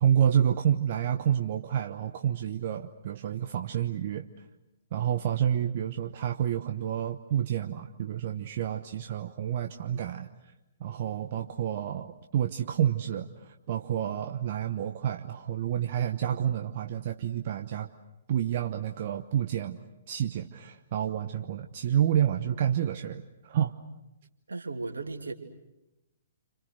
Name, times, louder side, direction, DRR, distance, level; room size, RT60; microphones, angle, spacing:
voice 1, 0.0-4.2 4.9-10.3 10.8-17.9 18.3-19.8 20.1-23.8, right 9 dB, 50° right, 6 dB, 1.1 m, -29 dB
voice 2, 24.5-25.3, right 3 dB, 80° right, 3 dB, 3.0 m, -36 dB
29.5 x 27.0 x 6.5 m, 0.97 s
figure-of-eight pair, 125°, 0 cm